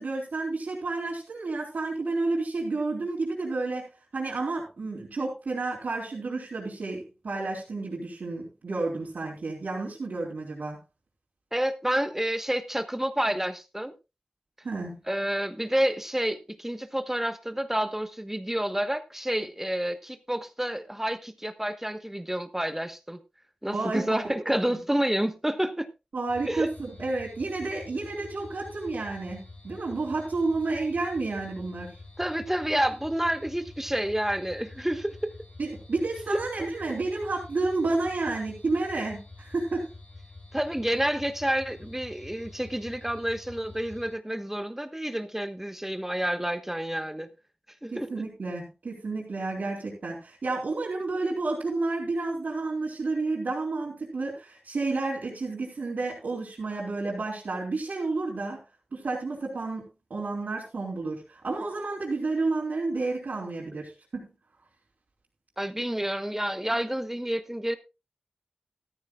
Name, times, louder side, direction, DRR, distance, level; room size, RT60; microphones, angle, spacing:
voice 1, 0.0-3.9 4.1-10.8 14.6-15.0 23.7-24.3 24.7-24.8 26.1-31.9 35.6-39.9 47.9-58.6 58.9-59.8 60.1-64.3, right 3 dB, 85° right, 3.8 m, -31 dB
voice 2, 11.5-13.9 15.1-23.2 23.6-25.9 26.5-26.7 32.2-35.3 36.3-36.4 40.5-47.3 47.8-48.1 65.6-67.8, right 1 dB, 10° right, 1.2 m, -29 dB
sound 1, 26.3-44.1, left 2 dB, 70° left, 6.4 m, -47 dB
14.5 x 14.0 x 2.4 m
cardioid pair, 40°, 3 cm